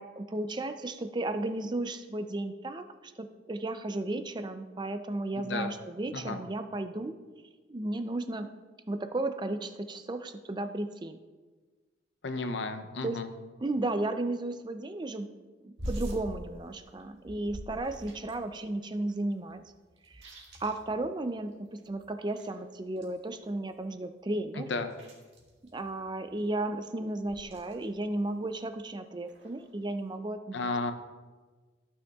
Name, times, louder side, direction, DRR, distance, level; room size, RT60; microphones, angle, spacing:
voice 1, 0.0-7.1 7.7-8.5 8.9-11.2 13.0-13.2 13.6-15.3 15.6-19.6 20.1-20.2 20.6-24.7 25.7-30.6, right 2 dB, 25° right, 9 dB, 0.4 m, -34 dB
voice 2, 5.4-5.7 6.1-6.4 12.2-13.3 24.6-24.9 30.5-30.9, left 3 dB, 70° left, 8 dB, 0.6 m, -33 dB
sound 1, 15.8-18.5 18.8-18.9 19.1-21.5 21.8-23.8 24.4-26.5 27.2-28.1 28.4-28.9 29.2-30.1, equal, 65° right, 2.0 m, -44 dB
14.5 x 6.3 x 2.4 m, 1.3 s
head